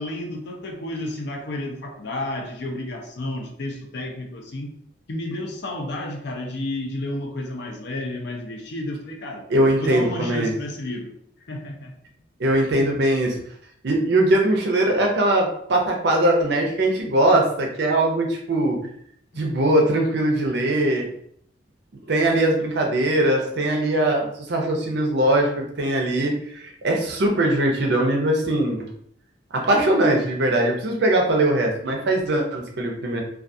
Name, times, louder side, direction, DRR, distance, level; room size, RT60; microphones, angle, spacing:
voice 1, 0.0-4.7 5.1-9.5 9.8-11.1 11.5-11.9, left 1 dB, 60° left, 2 dB, 0.5 m, -31 dB
voice 2, 9.5-10.5 12.4-13.4 13.8-18.8 19.4-21.1 22.1-28.9 29.5-33.2, right 1 dB, 60° right, 1 dB, 0.6 m, -21 dB
2.3 x 2.3 x 2.6 m, 0.67 s
head